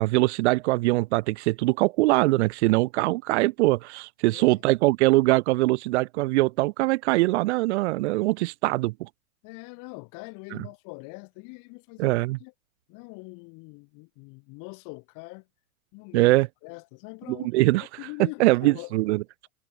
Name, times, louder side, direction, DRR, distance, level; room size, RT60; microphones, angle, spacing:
voice 1, 0.0-9.1 10.5-10.6 12.0-12.4 16.1-16.5 17.3-17.8 18.4-19.2, right 20 dB, 50° right, 1.0 m, -22 dB
voice 2, 4.3-4.6 9.4-12.5 12.9-15.5 15.9-16.4 16.6-17.5 18.0-18.9, left 30 dB, 45° left, 7.7 m, -42 dB
hypercardioid pair, 100°, 43 cm